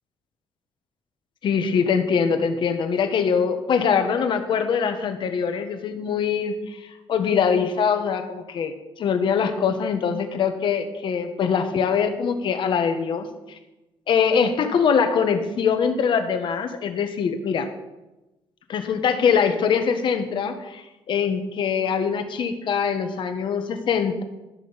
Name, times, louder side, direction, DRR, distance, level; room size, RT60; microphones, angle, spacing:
voice 1, 1.4-6.8 7.1-13.3 14.1-17.7 18.7-24.2, left 6 dB, 55° left, 7 dB, 1.3 m, -23 dB
12.5 x 6.1 x 7.0 m, 1.0 s
cardioid pair, 165°, 10 cm